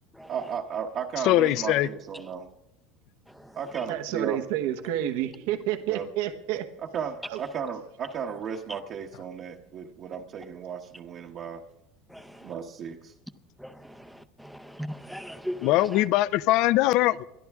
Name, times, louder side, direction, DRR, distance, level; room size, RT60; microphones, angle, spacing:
voice 1, 0.3-2.5 3.5-4.4 5.9-6.1 6.9-11.6 12.4-13.1, right 7 dB, 40° right, 0 dB, 1.0 m, -34 dB
voice 2, 1.2-1.9 15.6-17.2, left 15 dB, 55° left, 18 dB, 0.5 m, -22 dB
voice 3, 3.3-3.8 12.1-12.5 13.6-16.0, equal, ahead, 9 dB, 0.6 m, -40 dB
voice 4, 3.9-6.7 7.3-7.4, right 12 dB, 80° right, 6 dB, 1.1 m, -29 dB
21.5 x 13.0 x 3.6 m, 0.88 s
cardioid pair, 145°, 0 cm